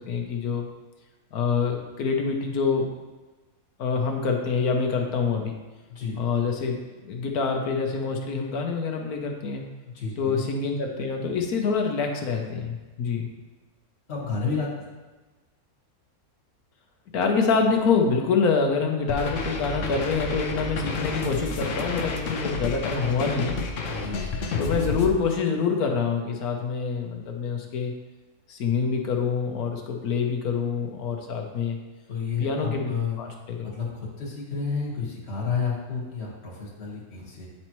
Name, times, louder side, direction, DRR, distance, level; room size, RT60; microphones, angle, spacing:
voice 1, 0.1-0.7 1.3-2.9 3.8-5.6 6.2-6.8 7.0-9.6 10.2-13.3 17.1-23.6 24.6-27.9 28.5-31.8 32.4-32.9 33.2-33.6, left 5 dB, 85° left, 2 dB, 1.3 m, -26 dB
voice 2, 5.9-6.2 9.8-10.4 14.1-14.7 23.9-24.5 32.1-33.2 33.6-37.5, left 5 dB, 45° left, -4 dB, 1.7 m, -31 dB
sound 1, 19.1-25.1, left 3 dB, 65° left, 1.0 m, -30 dB
9.2 x 4.3 x 3.0 m, 1.2 s
omnidirectional pair, 1.5 m